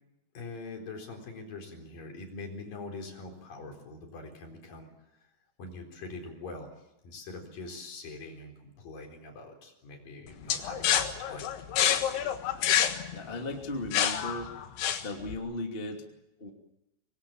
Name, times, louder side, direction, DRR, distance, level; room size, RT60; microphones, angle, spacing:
voice 1, 0.3-4.9 5.6-6.7 7.0-11.5, left 3 dB, 45° left, 3 dB, 5.5 m, -43 dB
sound 1, 10.5-15.3, left 10 dB, 65° left, 3.3 m, -28 dB
voice 2, 13.1-14.6 15.0-16.0 16.4-16.5, left 2 dB, 20° left, 2 dB, 1.4 m, -36 dB
25.0 x 21.0 x 8.8 m, 0.89 s
omnidirectional pair, 5.6 m